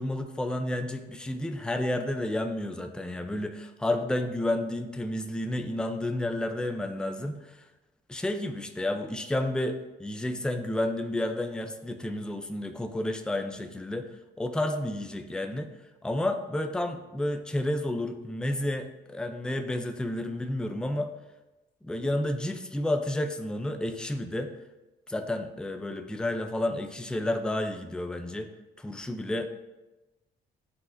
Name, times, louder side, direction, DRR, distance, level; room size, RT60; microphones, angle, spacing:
voice 1, 0.0-7.6 8.1-14.1 14.4-15.7 16.0-21.1 21.8-24.5 25.1-28.5 28.8-29.5, left 1 dB, 5° left, 6 dB, 0.5 m, -31 dB
9.5 x 4.1 x 2.6 m, 1.1 s
cardioid pair, 90°, 20 cm